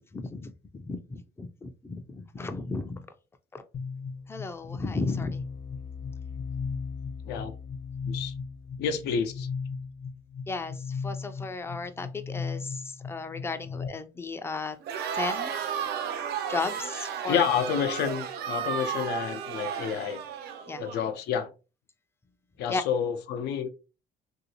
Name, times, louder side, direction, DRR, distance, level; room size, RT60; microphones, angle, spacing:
voice 1, 0.0-3.1 3.5-3.6 4.3-5.4 10.5-14.8 15.1-15.5 16.5-17.4 20.7-20.9 22.7-22.8, left 3 dB, 15° left, 0.4 m, -34 dB
sound 1, 3.7-13.9, left 5 dB, 55° left, 0.8 m, -36 dB
voice 2, 8.8-9.5 17.3-20.2 20.8-21.5 22.6-23.7, left 7 dB, 80° left, 0.5 m, -29 dB
Crowd, 14.8-21.0, right 8 dB, 75° right, 0.4 m, -33 dB
3.0 x 2.6 x 2.8 m
cardioid pair, 110°, 17 cm